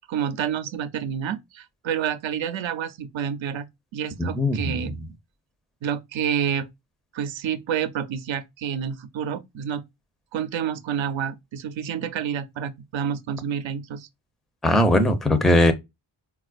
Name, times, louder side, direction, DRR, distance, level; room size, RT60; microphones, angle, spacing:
voice 1, 0.1-3.7 3.9-4.9 5.8-6.7 7.1-9.8 10.3-14.1, right 8 dB, 75° right, 0.6 m, -29 dB
voice 2, 4.2-4.9 14.6-15.7, left 1 dB, ahead, 0.5 m, -20 dB
4.2 x 2.3 x 2.4 m
wide cardioid pair, 85°, 46 cm